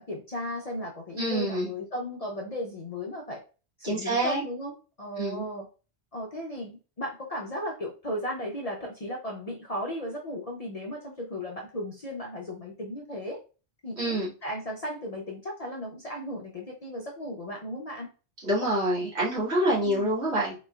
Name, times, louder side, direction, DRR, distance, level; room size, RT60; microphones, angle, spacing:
voice 1, 0.0-3.4 3.8-5.7 6.1-13.4 13.8-18.1 19.8-20.1, left 1 dB, 45° left, -1 dB, 0.5 m, -35 dB
voice 2, 1.2-1.7 3.8-4.4 5.2-5.4 14.0-14.3 18.4-20.5, right 1 dB, 75° right, -6 dB, 1.9 m, -26 dB
3.7 x 3.0 x 2.3 m, 0.34 s
omnidirectional pair, 1.1 m